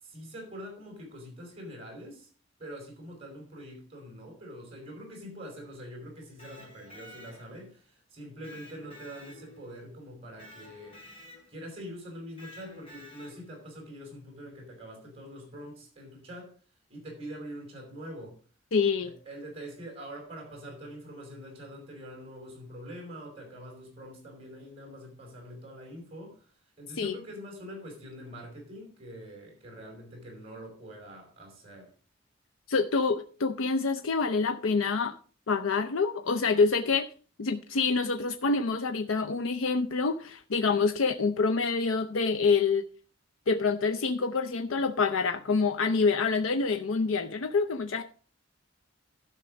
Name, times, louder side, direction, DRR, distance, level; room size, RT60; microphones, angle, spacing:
voice 1, 0.0-2.3 2.6-11.0 11.5-16.6 16.9-18.4 19.0-31.9, equal, 30° right, 4.9 m, -44 dB
Electric guitar, 6.2-7.7 8.4-9.8 10.4-11.7 12.4-13.6, left 1 dB, 30° left, 4.1 m, -51 dB
voice 2, 18.7-19.1 27.0-27.1 32.7-35.2 35.5-37.1 37.4-42.8 43.5-48.0, left 4 dB, 90° left, 0.6 m, -26 dB
12.0 x 5.9 x 5.1 m
head